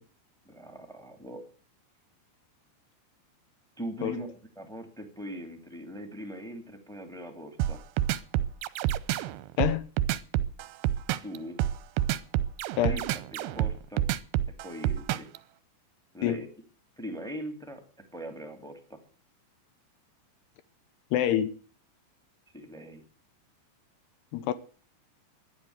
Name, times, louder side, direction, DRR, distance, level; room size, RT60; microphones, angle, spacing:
voice 1, 0.4-1.4 3.8-7.8 11.2-11.6 12.8-13.0 13.3-14.0 14.6-15.3 16.1-16.5 17.0-17.8 18.1-19.0 22.5-23.0, equal, ahead, 1.0 m, -40 dB
sound 1, 7.6-15.4, right 12 dB, 80° right, 2.4 m, -28 dB
voice 2, 9.6-9.9 12.8-13.0 16.2-16.4 21.1-21.5 24.3-24.5, left 11 dB, 75° left, 2.6 m, -26 dB
13.0 x 11.0 x 7.9 m
omnidirectional pair, 5.5 m